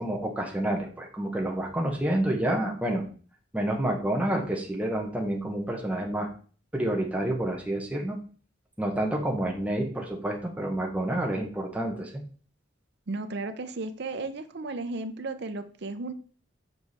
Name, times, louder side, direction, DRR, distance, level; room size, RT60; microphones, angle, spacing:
voice 1, 0.0-3.0 3.5-6.3 6.7-8.2 8.8-12.2, right 1 dB, 10° right, 1 dB, 1.1 m, -29 dB
voice 2, 13.1-16.1, right 3 dB, 60° right, 9 dB, 0.6 m, -34 dB
7.0 x 4.6 x 4.1 m, 0.41 s
head